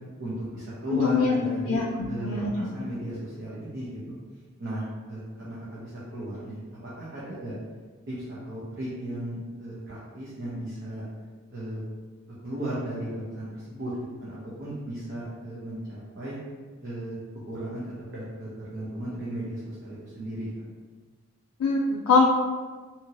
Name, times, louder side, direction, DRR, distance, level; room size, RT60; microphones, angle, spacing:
voice 1, 0.2-4.2 4.6-7.5 8.1-11.0 11.5-11.8 12.4-13.9 14.2-16.4 16.8-17.2 17.5-20.6, right 1 dB, 55° right, -8 dB, 0.7 m, -35 dB
voice 2, 0.9-1.3 1.7-1.8 2.2-2.5 21.6-22.2, left 4 dB, 85° left, -2 dB, 0.3 m, -22 dB
2.8 x 2.6 x 2.8 m, 1.4 s
head